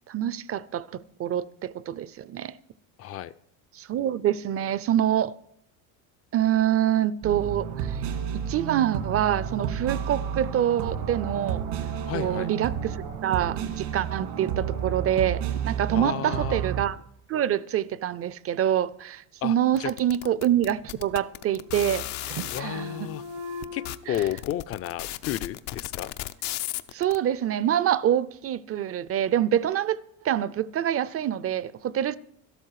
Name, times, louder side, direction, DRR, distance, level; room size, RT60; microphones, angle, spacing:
voice 1, 0.1-2.5 3.8-5.3 6.3-8.0 8.3-11.6 12.1-13.0 13.2-17.0 17.3-23.1 24.1-24.2 26.9-30.0 30.2-32.2, right 11 dB, 35° right, 0.5 m, -26 dB
voice 2, 3.0-3.3 12.1-12.5 15.9-16.6 19.4-19.9 22.5-23.2 23.7-26.1, left 12 dB, 35° left, 0.5 m, -32 dB
sound 1, 7.2-16.8, right 8 dB, 85° right, 2.4 m, -31 dB
sound 2, 19.8-22.6 23.3-23.4 23.6-27.2, left 15 dB, 75° left, 0.8 m, -34 dB
sound 3, 20.8-20.9 21.1-22.0 22.3-23.9, left 1 dB, 70° right, 1.1 m, -40 dB
12.5 x 12.5 x 4.8 m
cardioid pair, 115°, 42 cm